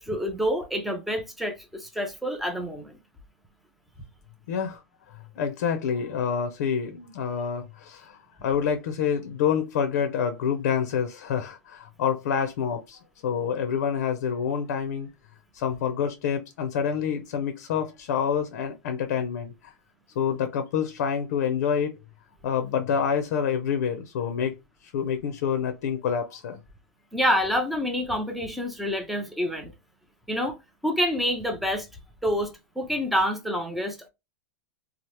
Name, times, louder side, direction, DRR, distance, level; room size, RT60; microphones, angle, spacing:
voice 1, 0.0-3.0 27.1-29.7 30.3-30.6 30.8-31.9 32.2-34.1, equal, ahead, 0.4 m, -27 dB
voice 2, 4.5-4.8 5.4-15.1 15.5-19.7 20.1-22.0 22.4-24.5 24.8-26.6, left 7 dB, 60° left, 0.5 m, -27 dB
2.9 x 2.0 x 3.1 m
supercardioid pair, 155°, 10 cm